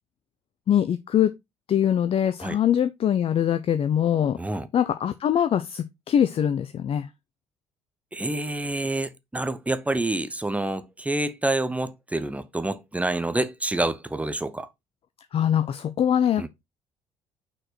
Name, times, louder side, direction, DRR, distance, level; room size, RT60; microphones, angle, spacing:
voice 1, 0.7-1.3 1.7-4.4 4.7-7.1 15.3-16.5, left 9 dB, 40° left, 0.5 m, -23 dB
voice 2, 4.4-4.7 8.1-14.7 16.4-16.5, right 2 dB, 10° right, 0.9 m, -27 dB
6.2 x 4.6 x 4.2 m
figure-of-eight pair, 50°, 15 cm